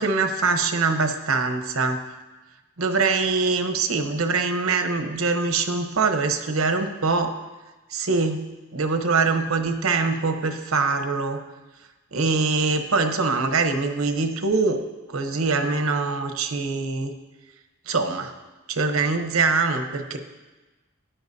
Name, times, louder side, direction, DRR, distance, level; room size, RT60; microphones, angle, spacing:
voice 1, 0.0-2.0 2.8-7.4 7.9-8.4 8.7-11.4 12.1-14.8 15.1-17.1 17.9-18.3 18.7-20.2, right 4 dB, 90° right, 7 dB, 0.9 m, -23 dB
13.5 x 10.0 x 2.7 m, 1.1 s
head